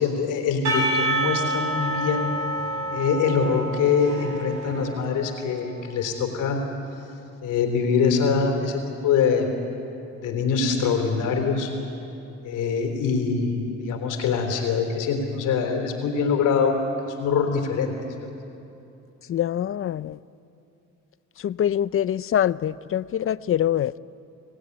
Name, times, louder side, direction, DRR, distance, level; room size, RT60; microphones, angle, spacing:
voice 1, 0.0-2.3 2.9-6.6 7.4-9.5 10.1-11.7 12.4-16.7 17.0-17.9, left 6 dB, 90° left, 4 dB, 3.7 m, -24 dB
Percussion / Church bell, 0.6-5.7, right 1 dB, 70° right, 7.3 m, -28 dB
voice 2, 19.3-20.2 21.4-23.9, left 10 dB, 45° left, 19 dB, 0.5 m, -24 dB
25.5 x 16.5 x 9.9 m, 2.7 s
cardioid pair, 90°, 30 cm